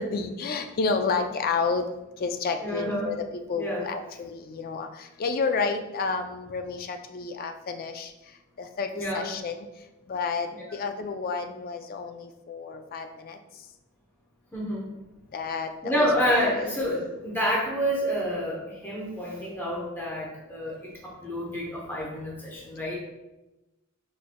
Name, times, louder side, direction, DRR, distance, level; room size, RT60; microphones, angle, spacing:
voice 1, 0.0-1.8 2.2-4.9 5.2-8.1 8.6-8.9 9.1-9.7 10.1-13.4 15.3-16.1 16.4-16.7, left 4 dB, 40° left, 6 dB, 0.3 m, -30 dB
voice 2, 2.6-3.2 3.6-3.9 8.9-9.3 14.5-14.9 15.8-20.7 21.0-23.0, equal, 10° left, -5 dB, 0.8 m, -28 dB
4.8 x 4.3 x 2.2 m, 1.0 s
head